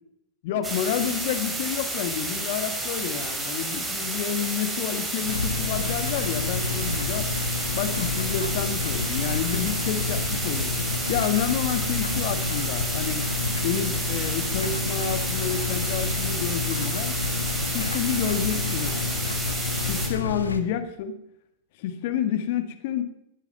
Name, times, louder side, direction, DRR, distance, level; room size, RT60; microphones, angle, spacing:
voice 1, 0.4-7.3 7.7-10.7 11.1-13.3 13.6-17.1 17.7-19.1 19.9-21.2 21.8-23.0, left 9 dB, 60° left, 10 dB, 1.8 m, -29 dB
sound 1, 0.6-20.1, right 2 dB, 15° right, 4.3 m, -31 dB
sound 2, 5.3-20.6, left 4 dB, 90° left, 1.1 m, -29 dB
17.5 x 10.0 x 5.5 m, 0.81 s
hypercardioid pair, 100°, 0 cm